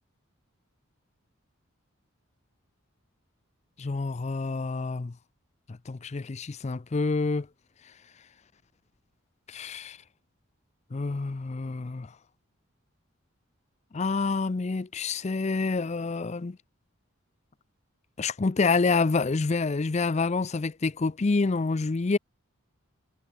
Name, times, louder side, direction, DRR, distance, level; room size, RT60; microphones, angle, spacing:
voice 1, 3.8-5.1 5.7-7.5 9.5-10.0 10.9-12.1 13.9-16.6 18.2-22.2, left 4 dB, 30° left, 0.4 m, -27 dB
head